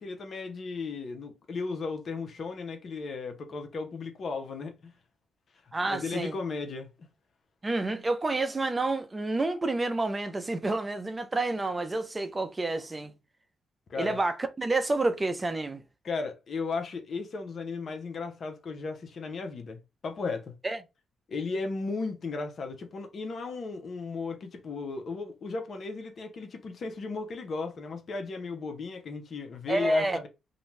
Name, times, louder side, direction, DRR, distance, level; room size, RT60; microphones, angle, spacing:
voice 1, 0.0-4.9 5.8-6.9 13.9-14.2 16.0-20.5 21.3-30.3, left 4 dB, 50° left, 0.6 m, -35 dB
voice 2, 5.7-6.3 7.6-13.1 13.9-15.8 20.6-20.8 29.7-30.2, right 2 dB, 25° right, 0.4 m, -29 dB
2.5 x 2.2 x 3.1 m
cardioid pair, 80°, 0 cm